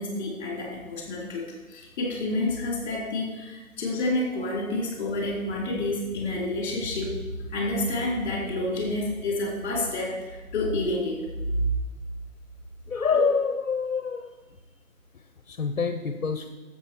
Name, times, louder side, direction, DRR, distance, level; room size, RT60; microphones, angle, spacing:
voice 1, 0.0-7.2 7.5-11.2 13.1-13.2, left 2 dB, 35° left, -3 dB, 4.4 m, -29 dB
voice 2, 12.9-14.6 15.1-16.5, left 5 dB, 65° left, 8 dB, 1.0 m, -27 dB
11.0 x 7.7 x 6.3 m, 1.2 s
figure-of-eight pair, 145°, 43 cm